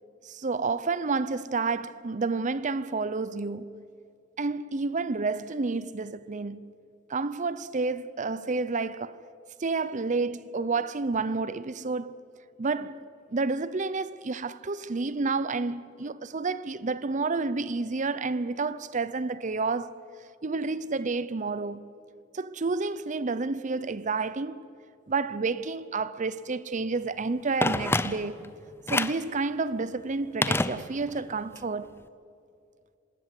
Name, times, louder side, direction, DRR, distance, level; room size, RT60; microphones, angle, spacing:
voice 1, 0.2-3.8 4.4-6.7 7.1-9.2 9.6-12.2 12.6-20.0 20.4-21.9 22.3-24.7 25.1-28.5 28.9-32.0, right 3 dB, 40° right, 0.6 m, -30 dB
Telephone, 27.6-28.5 28.9-29.3 30.4-31.3 31.6-31.7, left 2 dB, 15° left, 0.6 m, -27 dB
27.0 x 19.0 x 9.6 m
head